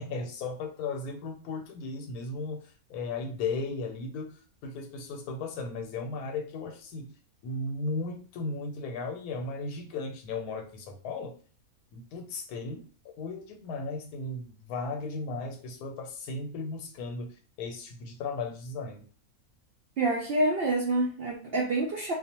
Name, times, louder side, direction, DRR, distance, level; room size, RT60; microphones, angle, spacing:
voice 1, 0.0-7.1 7.4-11.3 11.9-12.8 13.2-19.1, left 3 dB, 90° left, 1.1 m, -36 dB
voice 2, 20.0-22.1, right 2 dB, 80° right, 0.5 m, -27 dB
2.4 x 2.1 x 2.8 m
omnidirectional pair, 1.6 m